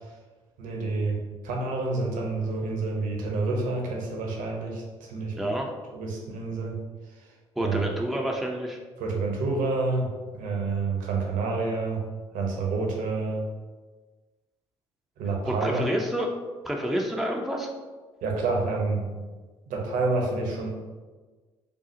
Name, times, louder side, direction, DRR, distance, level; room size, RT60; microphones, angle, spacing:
voice 1, 0.6-1.2 1.4-5.3 5.9-6.8 7.6-7.8 9.0-10.1 10.3-12.0 12.3-13.4 15.2-15.8 18.2-19.1 19.7-20.7, right 3 dB, 65° right, -1 dB, 1.0 m, -28 dB
voice 2, 5.4-5.7 7.6-8.8 15.4-16.3 16.6-17.7, equal, ahead, 0 dB, 0.6 m, -28 dB
5.5 x 2.4 x 2.8 m, 1.3 s
hypercardioid pair, 55°, 15 cm